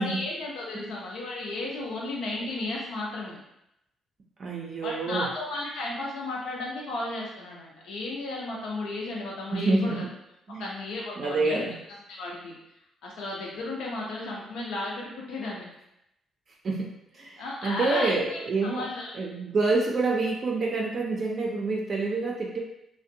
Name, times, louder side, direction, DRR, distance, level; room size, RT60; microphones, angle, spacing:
voice 1, 0.0-3.4 4.8-10.1 10.6-11.6 12.1-12.5 13.0-15.7 17.4-19.1, left 2 dB, 80° left, -3 dB, 0.7 m, -34 dB
voice 2, 4.4-5.3 9.5-10.1 10.5-10.7 11.2-11.7 16.6-16.9 17.1-18.9 19.1-22.6, right 3 dB, 50° right, -1 dB, 0.4 m, -27 dB
2.5 x 2.1 x 2.7 m, 0.82 s
cardioid pair, 90°, 0 cm